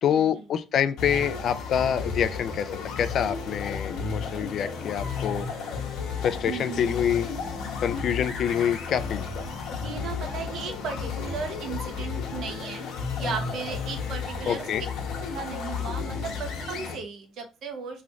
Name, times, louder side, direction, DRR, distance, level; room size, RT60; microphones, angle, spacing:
voice 1, 0.0-2.7 3.0-5.5 6.2-7.3 7.8-9.4 14.5-14.8, left 9 dB, 55° left, 0.3 m, -26 dB
sound 1, 1.0-17.0, left 5 dB, 85° left, 0.9 m, -33 dB
sound 2, 6.1-9.3 9.6-10.6 11.2-11.3, right 2 dB, 85° right, 1.4 m, -49 dB
voice 2, 6.5-7.0 9.8-12.9 13.2-14.7 15.2-18.0, right 5 dB, 65° right, 0.9 m, -36 dB
3.1 x 2.4 x 3.9 m
cardioid pair, 135°, 0 cm